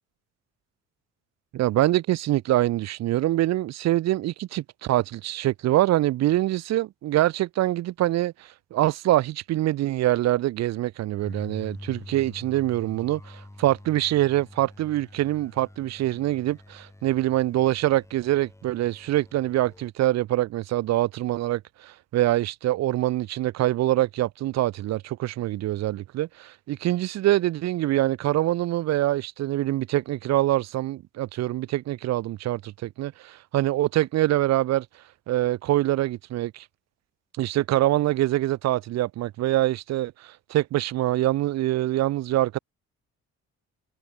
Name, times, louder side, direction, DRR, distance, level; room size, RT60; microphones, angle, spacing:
voice 1, 1.5-34.9 35.3-36.7 37.4-42.6, right 15 dB, 60° right, 0.5 m, -24 dB
sound 1, 11.2-19.9, left 1 dB, 10° left, 4.2 m, -45 dB
cardioid pair, 90°, 30 cm